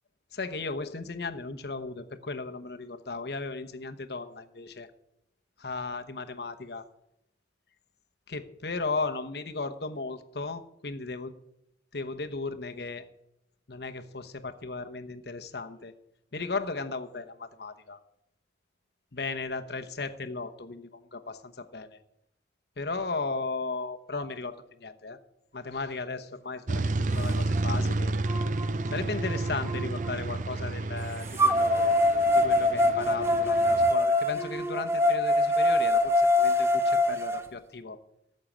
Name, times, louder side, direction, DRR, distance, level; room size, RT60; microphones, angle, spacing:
voice 1, 0.3-4.9 5.6-6.8 8.3-11.3 11.9-13.0 13.7-15.9 16.3-18.0 19.1-22.0 22.8-25.2 25.5-28.1 28.9-32.0 32.3-38.0, left 3 dB, 60° left, 8 dB, 1.0 m, -36 dB
sound 1, 26.7-33.9, right 2 dB, 45° right, 0.4 m, -31 dB
sound 2, 27.6-27.7 28.2-30.1 31.4-37.4, left 1 dB, 15° right, 0.9 m, -24 dB
14.0 x 6.6 x 8.6 m, 0.80 s
head